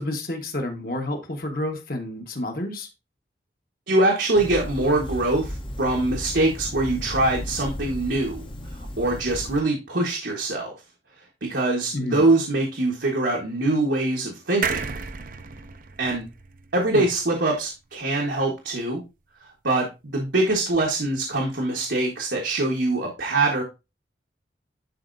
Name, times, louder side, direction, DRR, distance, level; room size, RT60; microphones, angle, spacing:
voice 1, 0.0-2.9 11.9-12.2 16.9-17.1, left 1 dB, 50° left, 3 dB, 1.4 m, -30 dB
voice 2, 3.9-10.7 11.4-14.9 16.0-16.2 16.7-19.0 19.4-19.9 20.1-23.6, right 2 dB, 80° right, -1 dB, 1.5 m, -23 dB
sound 1, 4.4-9.6, equal, 30° left, 0.8 m, -35 dB
sound 2, 14.6-18.1 18.5-18.6 18.8-18.9, right 5 dB, 50° right, 0.6 m, -33 dB
11.0 x 4.4 x 2.6 m, 0.26 s
head